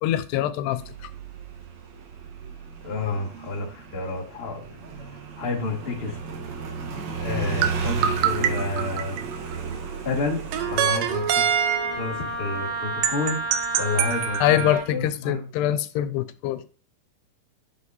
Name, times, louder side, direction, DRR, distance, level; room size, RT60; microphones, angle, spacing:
voice 1, 0.0-1.1 14.4-16.6, left 12 dB, 85° left, 13 dB, 2.8 m, -24 dB
Motorcycle, 0.7-15.0, right 5 dB, 60° right, 2.0 m, -35 dB
voice 2, 2.8-4.6 5.0-6.2 7.2-9.2 10.0-11.6 11.9-15.4, left 3 dB, 45° left, -1 dB, 0.7 m, -30 dB
sound 1, 7.6-9.5 10.5-12.2 13.0-14.7, right 9 dB, 85° right, 1.8 m, -25 dB
Wind instrument woodwind instrument, 10.5-14.9, right 2 dB, 30° right, 1.2 m, -32 dB
8.4 x 7.1 x 2.6 m, 0.37 s
omnidirectional pair, 4.7 m